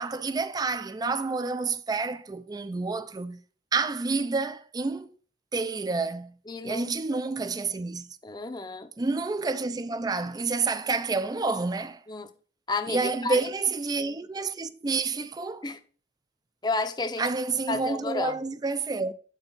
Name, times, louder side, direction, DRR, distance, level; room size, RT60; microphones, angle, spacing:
voice 1, 0.0-3.4 3.7-5.1 5.5-6.3 6.6-8.1 9.0-12.0 12.9-15.6 17.2-19.1, right 3 dB, 20° right, 0.4 m, -29 dB
voice 2, 6.5-6.9 8.2-8.9 12.1-12.3 12.7-13.4 15.6-15.8 16.6-17.3 17.7-18.4, left 3 dB, 25° left, 0.6 m, -31 dB
9.0 x 4.8 x 3.9 m
head